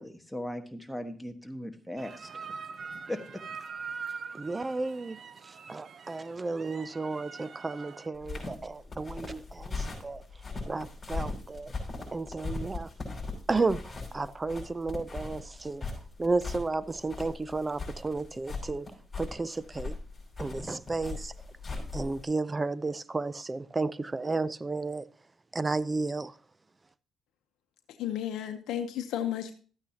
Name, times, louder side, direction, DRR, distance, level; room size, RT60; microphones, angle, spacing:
voice 1, 0.0-2.7 3.1-3.4, left 1 dB, ahead, 1.3 m, -38 dB
sound 1, 2.0-8.1, right 5 dB, 50° right, 0.8 m, -43 dB
voice 2, 4.4-5.2 5.7-10.2 10.7-11.7 12.1-12.9 13.5-15.8 16.2-18.9 19.2-19.9 20.4-21.3 21.9-25.1 25.5-26.3, right 3 dB, 25° right, 0.5 m, -32 dB
sound 2, 8.2-22.2, left 3 dB, 25° left, 5.4 m, -39 dB
voice 3, 28.0-29.5, left 10 dB, 85° left, 0.7 m, -33 dB
13.0 x 9.0 x 2.8 m
cardioid pair, 90°, 0 cm